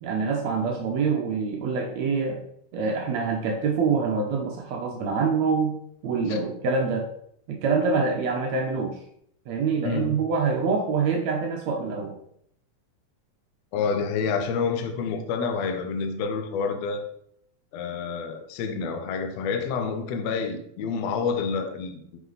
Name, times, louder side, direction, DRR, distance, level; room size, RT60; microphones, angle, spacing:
voice 1, 0.0-2.4 2.7-5.8 6.0-7.1 7.5-9.0 9.5-12.2, right 5 dB, 70° right, 2 dB, 1.8 m, -25 dB
voice 2, 13.7-17.0 17.7-22.0, left 5 dB, 70° left, 6 dB, 1.7 m, -28 dB
8.1 x 5.7 x 4.0 m, 0.69 s
omnidirectional pair, 3.9 m